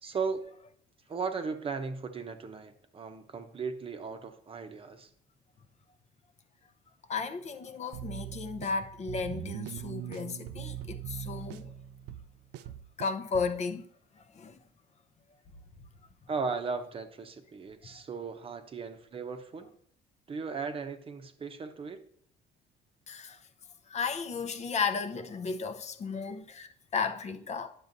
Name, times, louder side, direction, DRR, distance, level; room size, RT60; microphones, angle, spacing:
voice 1, 0.0-0.4 1.1-5.1 16.3-19.7 20.3-22.0, right 5 dB, 35° right, 0.8 m, -36 dB
voice 2, 7.1-11.7 13.0-13.9 14.2-14.6 17.8-18.0 23.1-23.4 23.9-27.7, left 5 dB, 40° left, 0.7 m, -34 dB
sound 1, 7.9-13.6, right 12 dB, 80° right, 0.4 m, -41 dB
10.5 x 6.9 x 2.6 m
cardioid pair, 110°, 17 cm